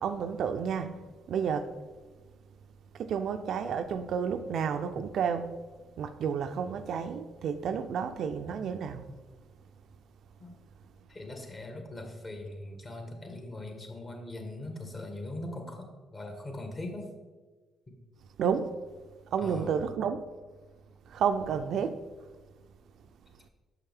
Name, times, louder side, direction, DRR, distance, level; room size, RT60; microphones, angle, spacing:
voice 1, 0.0-1.0 1.3-1.7 2.9-5.6 6.0-9.1 18.4-18.7 19.3-20.2 21.1-22.0, right 7 dB, 70° right, 0.4 m, -31 dB
voice 2, 11.1-17.1 17.9-18.0 19.4-19.7, left 2 dB, 35° left, 1.4 m, -41 dB
5.9 x 5.7 x 3.5 m
supercardioid pair, 65°, 0 cm